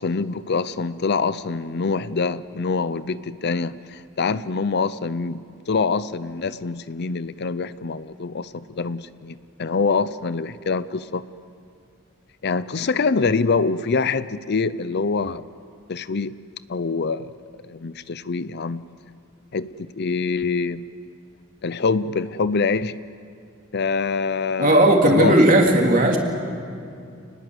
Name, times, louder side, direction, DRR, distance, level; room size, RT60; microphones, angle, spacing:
voice 1, 0.0-11.2 12.4-15.4 15.9-16.3 16.7-17.3 17.7-18.8 19.5-20.8 21.6-23.0 23.7-25.4, left 4 dB, 50° left, 15 dB, 0.6 m, -25 dB
voice 2, 24.6-26.2, right 1 dB, 40° right, 1 dB, 3.2 m, -16 dB
28.5 x 20.5 x 8.0 m, 2.4 s
head